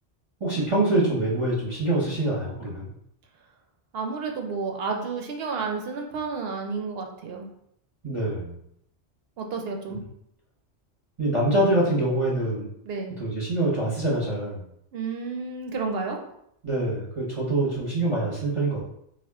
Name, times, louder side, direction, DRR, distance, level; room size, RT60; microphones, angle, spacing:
voice 1, 0.4-2.9 8.0-8.5 11.2-12.7 13.2-14.6 16.6-18.8, right 1 dB, 35° right, -5 dB, 0.7 m, -25 dB
voice 2, 3.9-7.5 9.4-10.0 12.9-13.2 14.9-16.2, right 4 dB, 70° right, 2 dB, 0.8 m, -31 dB
3.5 x 2.4 x 3.5 m, 0.75 s
omnidirectional pair, 1.1 m